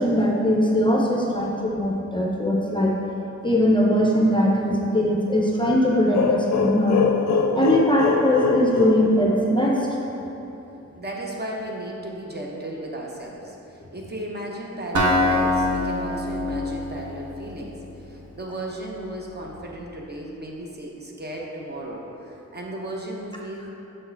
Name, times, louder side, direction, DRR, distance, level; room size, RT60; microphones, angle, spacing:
voice 1, 0.0-2.9 3.4-7.0 7.5-9.8, equal, 15° left, -2 dB, 0.5 m, -20 dB
sound 1, 6.1-9.9, left 5 dB, 65° left, 0.4 m, -23 dB
voice 2, 11.0-23.7, right 1 dB, 35° right, -2 dB, 0.8 m, -35 dB
Acoustic guitar, 14.9-18.8, left 1 dB, 75° right, 0.9 m, -25 dB
6.2 x 4.4 x 4.5 m, 3.0 s
wide cardioid pair, 145°, 29 cm